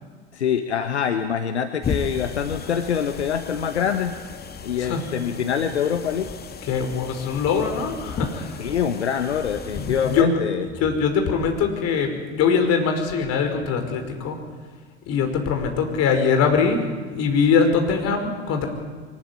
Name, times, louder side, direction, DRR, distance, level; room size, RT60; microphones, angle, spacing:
voice 1, 0.3-4.2 4.6-6.3 8.6-10.7, left 8 dB, 75° left, 8 dB, 1.3 m, -25 dB
sound 1, 1.8-10.2, left 5 dB, 30° left, 2.1 m, -35 dB
voice 2, 6.6-8.6 9.7-10.3 10.6-14.4 15.1-16.8 17.1-18.7, left 6 dB, 45° left, 5 dB, 5.3 m, -22 dB
23.5 x 20.0 x 9.8 m, 1.5 s
figure-of-eight pair, 70°, 33 cm